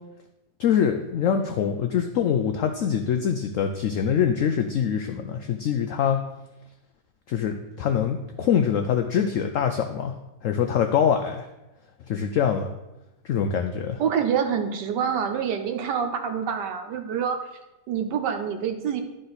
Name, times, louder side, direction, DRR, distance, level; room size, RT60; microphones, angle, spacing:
voice 1, 0.6-6.2 7.3-10.1 10.4-11.5 12.1-12.7 13.2-14.0, left 8 dB, 85° left, 6 dB, 0.7 m, -24 dB
voice 2, 14.0-17.5 17.9-19.0, right 7 dB, 75° right, 6 dB, 1.4 m, -26 dB
11.5 x 3.8 x 4.0 m, 0.97 s
omnidirectional pair, 1.9 m